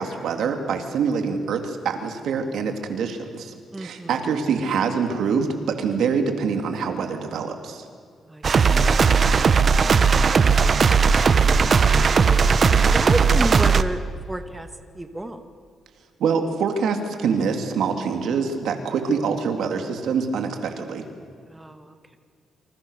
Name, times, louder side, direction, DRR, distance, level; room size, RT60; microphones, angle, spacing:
voice 1, 0.0-7.8 16.2-21.0, right 5 dB, 80° right, 5 dB, 3.2 m, -25 dB
voice 2, 3.7-4.4 8.3-9.1 12.7-14.0 14.3-14.7 14.9-15.5 21.5-22.2, right 1 dB, 10° right, 7 dB, 1.7 m, -32 dB
sound 1, 8.4-13.8, right 5 dB, 45° right, 1.1 m, -17 dB
28.0 x 26.5 x 6.8 m, 2.1 s
cardioid pair, 110°, 0 cm